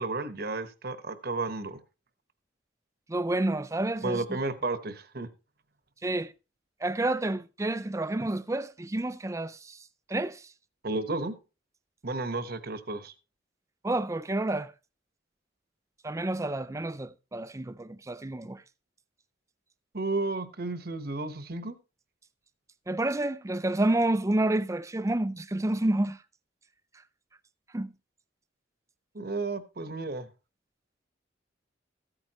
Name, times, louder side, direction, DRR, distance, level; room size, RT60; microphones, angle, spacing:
voice 1, 0.0-1.8 4.0-5.3 10.8-11.3 12.0-13.1 19.9-21.8 29.1-30.3, right 3 dB, 50° right, 1.1 m, -32 dB
voice 2, 3.1-4.4 6.0-6.3 6.8-9.8 10.1-10.4 13.8-14.7 16.0-18.6 22.9-26.2 27.7-27.9, right 1 dB, 15° right, 0.4 m, -29 dB
14.5 x 9.0 x 3.0 m
head